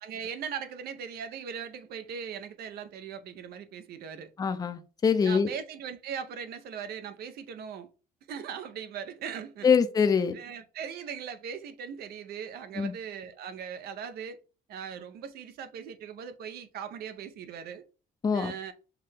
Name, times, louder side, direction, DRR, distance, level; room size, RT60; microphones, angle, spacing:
voice 1, 0.0-4.3 5.2-7.9 8.3-9.7 10.3-14.4 14.7-17.8 18.3-18.7, right 7 dB, 65° right, 0.6 m, -39 dB
voice 2, 4.4-5.5 9.6-10.4 12.8-12.9 18.2-18.5, left 6 dB, 20° left, 0.4 m, -24 dB
5.8 x 2.1 x 3.3 m
cardioid pair, 110°, 17 cm